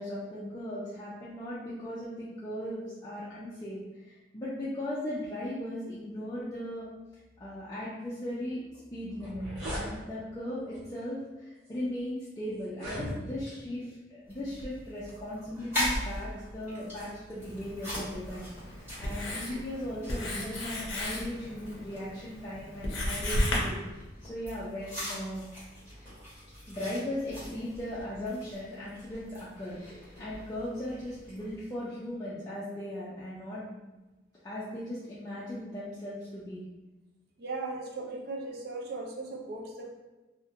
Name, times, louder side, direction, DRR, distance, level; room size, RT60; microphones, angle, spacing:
voice 1, 0.0-6.9 7.4-8.6 8.9-18.5 19.0-23.8 24.2-25.4 26.7-34.0 34.4-36.6 37.8-37.9, left 1 dB, 20° left, -9 dB, 0.4 m, -38 dB
sound 1, 8.7-8.8 9.1-9.9 10.7-11.0 11.7-11.8 12.6-13.5, equal, 80° right, 1.0 m, -37 dB
sound 2, 14.3-31.6, equal, 10° right, 1.2 m, -41 dB
Writing, 17.4-23.6, left 1 dB, 75° left, 0.6 m, -35 dB
voice 2, 37.4-39.9, right 3 dB, 50° right, 0 dB, 0.4 m, -37 dB
2.4 x 2.1 x 2.7 m, 1.1 s
head